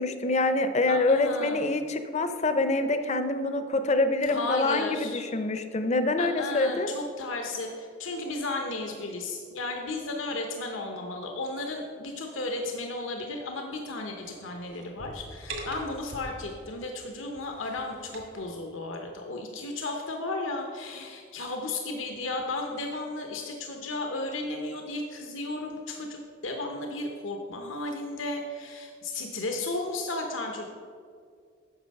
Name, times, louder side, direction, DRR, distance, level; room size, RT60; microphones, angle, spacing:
voice 1, 0.0-6.9, left 2 dB, 35° left, 9 dB, 0.6 m, -26 dB
voice 2, 0.9-1.6 4.3-5.2 6.2-30.7, left 2 dB, 80° left, 3 dB, 0.8 m, -34 dB
sound 1, 14.2-16.7 17.3-18.5, right 2 dB, 70° right, 1.8 m, -42 dB
8.8 x 6.3 x 5.3 m, 2.1 s
head